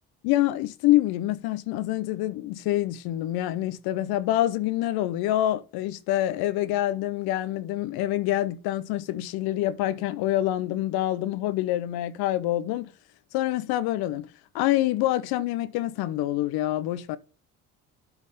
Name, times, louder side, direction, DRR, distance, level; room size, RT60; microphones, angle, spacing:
voice 1, 0.2-12.9 13.3-14.3 14.5-17.2, left 14 dB, 85° left, 0.7 m, -26 dB
8.1 x 3.6 x 6.4 m
supercardioid pair, 65°, 37 cm